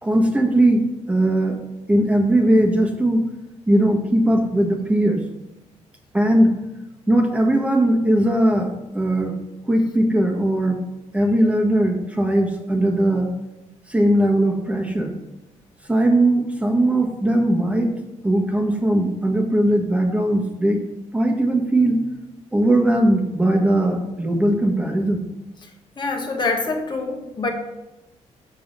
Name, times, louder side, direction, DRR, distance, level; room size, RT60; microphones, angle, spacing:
voice 1, 0.0-1.6 1.9-3.2 3.7-5.2 6.1-6.5 7.1-9.3 9.7-10.8 11.1-13.3 13.9-15.1 15.9-17.9 18.2-20.8 21.1-22.0 22.5-25.2, right 1 dB, 10° right, 2 dB, 1.3 m, -19 dB
voice 2, 26.0-27.5, left 3 dB, 35° left, 3 dB, 1.4 m, -25 dB
7.2 x 4.6 x 5.5 m, 0.98 s
cardioid pair, 90°, 13 cm